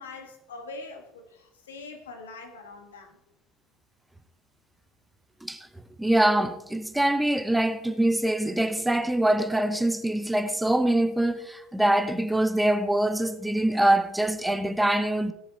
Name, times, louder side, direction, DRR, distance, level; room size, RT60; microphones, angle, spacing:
voice 1, 0.0-3.2, left 3 dB, 75° left, 1.8 m, -43 dB
voice 2, 6.0-15.3, right 1 dB, 5° right, 0.9 m, -24 dB
16.5 x 7.2 x 4.4 m
figure-of-eight pair, 70°, 0 cm